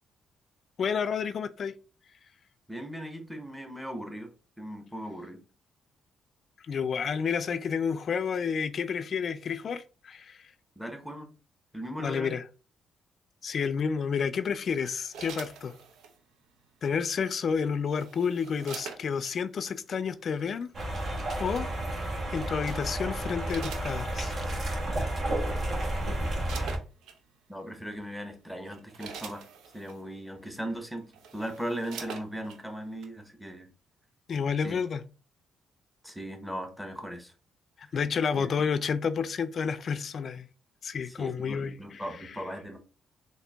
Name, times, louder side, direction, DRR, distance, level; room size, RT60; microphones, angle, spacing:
voice 1, 0.8-1.7 6.7-10.4 12.0-12.4 13.4-15.7 16.8-20.7 21.4-21.7 22.3-24.3 34.3-35.0 37.8-40.5 40.8-41.8, left 6 dB, 50° left, 0.4 m, -30 dB
voice 2, 2.7-5.4 10.8-11.3 11.7-12.4 27.5-29.5 29.7-31.1 31.3-33.7 34.6-34.8 36.0-37.3 37.8-37.9 38.3-38.5 41.0-42.8, equal, ahead, 0.9 m, -38 dB
sound 1, 14.8-16.2 17.5-19.4 20.4-20.6 22.3-22.6 23.1-24.5 25.3-25.4 25.7-27.2 27.9-28.1 28.5-30.0 30.7-30.8 31.1-32.6 33.0-33.1, right 6 dB, 85° right, 0.6 m, -45 dB
sound 2, 20.7-26.8, right 1 dB, 50° right, 1.3 m, -31 dB
3.8 x 2.6 x 3.4 m
cardioid pair, 90°, 0 cm